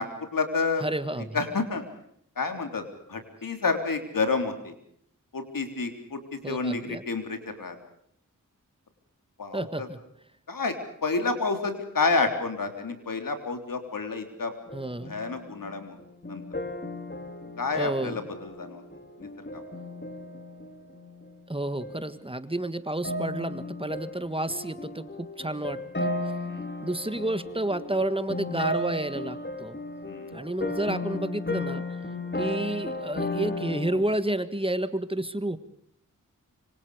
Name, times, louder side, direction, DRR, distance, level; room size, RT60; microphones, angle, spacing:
voice 1, 0.0-0.8 1.3-1.8 2.4-4.7 5.3-7.8 9.4-9.9 10.5-10.8 11.0-14.5 15.1-16.0 16.3-16.4 17.6-18.8 19.2-19.6 26.4-26.7 30.0-30.4, left 4 dB, 90° left, 7 dB, 3.7 m, -29 dB
voice 2, 0.8-1.4 6.4-7.0 9.5-10.0 14.7-15.1 17.8-18.2 21.5-26.3 26.8-29.8 30.3-32.0 32.3-35.6, right 1 dB, 15° right, 12 dB, 1.6 m, -30 dB
sound 1, 14.7-21.5 21.8-22.1 23.0-34.0, left 2 dB, 35° left, 4.3 m, -35 dB
26.0 x 25.0 x 5.1 m, 0.67 s
wide cardioid pair, 70°, 32 cm